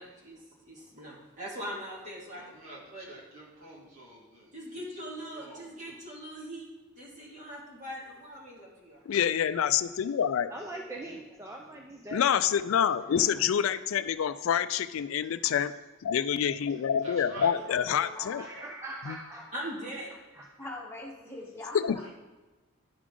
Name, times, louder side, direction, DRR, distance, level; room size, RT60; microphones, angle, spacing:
voice 1, 0.0-2.4 2.9-3.0 4.5-6.7 7.0-9.0 19.5-20.2, equal, 35° right, -4 dB, 2.1 m, -41 dB
voice 2, 2.3-4.8 5.3-6.0 17.0-17.5 22.0-22.1, right 2 dB, 80° right, -5 dB, 2.5 m, -48 dB
voice 3, 9.1-10.5 12.1-15.7 16.0-18.5 19.1-19.2 21.7-22.1, left 8 dB, 75° left, 14 dB, 0.3 m, -27 dB
voice 4, 10.5-12.2 13.0-13.4 16.7-16.8 17.1-17.2 18.4-19.7 20.3-20.5, right 2 dB, 15° right, 0 dB, 0.5 m, -42 dB
voice 5, 17.5-18.5 20.6-22.1, left 1 dB, 10° left, -4 dB, 1.3 m, -42 dB
11.0 x 4.9 x 3.7 m, 1.2 s
head